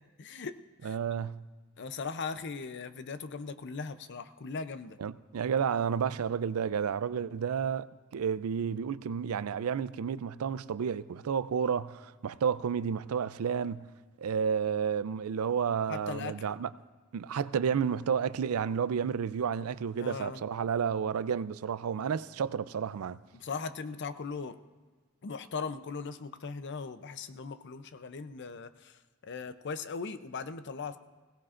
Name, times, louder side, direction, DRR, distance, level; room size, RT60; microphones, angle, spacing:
voice 1, 0.0-1.0 1.8-5.0 15.9-16.4 20.0-20.4 23.3-24.6 25.2-31.0, left 5 dB, 55° left, 0.6 m, -39 dB
voice 2, 0.8-1.4 5.0-7.9 8.1-13.9 14.2-16.7 17.1-23.2, right 7 dB, 85° right, 0.4 m, -31 dB
20.5 x 17.0 x 2.5 m
head